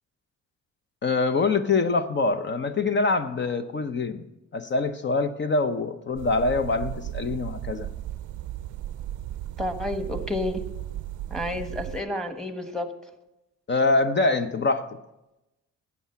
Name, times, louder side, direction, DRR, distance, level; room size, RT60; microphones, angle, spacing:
voice 1, 1.0-4.2 4.5-7.9 13.7-15.0, left 3 dB, 35° left, 9 dB, 0.8 m, -24 dB
sound 1, 6.2-12.0, right 13 dB, 80° right, 0.6 m, -35 dB
voice 2, 9.6-10.6 11.3-12.9, left 1 dB, ahead, 7 dB, 1.3 m, -30 dB
12.5 x 8.5 x 5.8 m, 0.95 s
cardioid pair, 90°, 30 cm